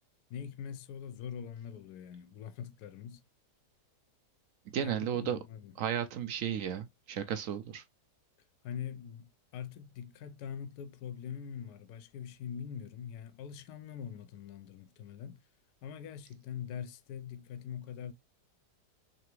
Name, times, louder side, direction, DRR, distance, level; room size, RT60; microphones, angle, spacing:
voice 1, 0.3-3.2 4.8-5.7 8.6-15.4 15.8-18.1, left 8 dB, 75° left, 1.1 m, -43 dB
voice 2, 4.7-5.4 5.8-7.8, right 9 dB, 70° right, 0.8 m, -34 dB
3.9 x 3.3 x 3.0 m
omnidirectional pair, 1.8 m